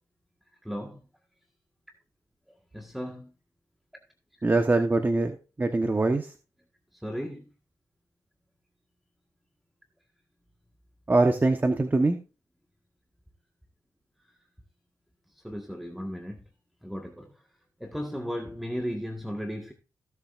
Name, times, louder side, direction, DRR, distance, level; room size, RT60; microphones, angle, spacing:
voice 1, 0.6-1.0 2.5-3.3 4.7-4.8 6.9-7.4 15.3-16.5 16.8-17.5 17.8-19.7, equal, ahead, 1.6 m, -36 dB
voice 2, 4.4-6.3 11.1-12.2, right 2 dB, 25° right, 1.3 m, -23 dB
16.5 x 7.3 x 2.6 m
cardioid pair, 65°, 7 cm